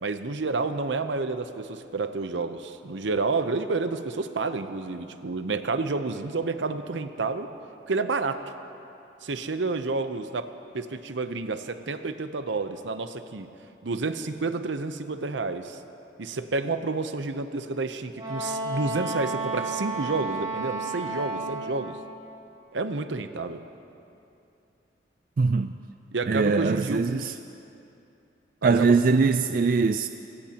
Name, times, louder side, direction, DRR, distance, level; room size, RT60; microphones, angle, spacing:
voice 1, 0.0-7.5 7.9-8.4 9.2-10.5 10.7-13.5 13.8-15.8 16.2-22.0 22.7-23.6 26.1-27.0 28.6-28.9, right 3 dB, 80° right, 9 dB, 0.8 m, -29 dB
Wind instrument woodwind instrument, 18.2-21.9, right 3 dB, 25° right, 3.8 m, -32 dB
voice 2, 25.4-25.7 26.3-27.3 28.6-30.1, right 4 dB, 50° right, 9 dB, 0.3 m, -22 dB
25.5 x 17.5 x 2.9 m, 2.7 s
head